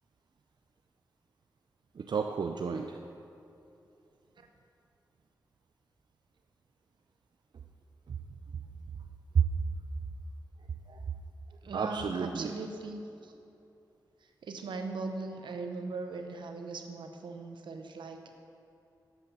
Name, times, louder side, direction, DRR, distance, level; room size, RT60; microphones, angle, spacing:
voice 1, 2.0-3.0 8.1-8.2 9.3-9.5 10.9-11.0 11.7-12.5, right 6 dB, 70° right, 4 dB, 0.5 m, -30 dB
voice 2, 11.6-13.3 14.4-18.4, right 3 dB, 85° right, 5 dB, 0.9 m, -39 dB
9.2 x 7.8 x 7.0 m, 2.8 s
cardioid pair, 40°, 8 cm